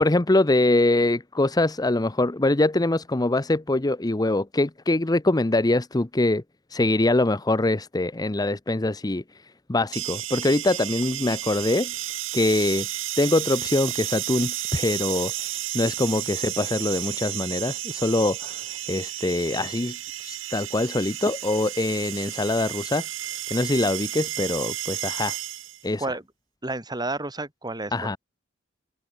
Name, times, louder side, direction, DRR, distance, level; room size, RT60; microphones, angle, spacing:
voice 1, 0.0-6.4 6.7-9.2 9.7-11.9 12.3-12.9 13.2-15.3 15.7-20.0 20.2-23.0 23.5-25.4 25.8-26.1 27.9-28.2, left 2 dB, 20° left, 0.7 m, -23 dB
sound 1, 9.9-25.9, right 13 dB, 85° right, 3.8 m, -32 dB
voice 2, 26.6-27.9, right 2 dB, 20° right, 3.1 m, -30 dB
head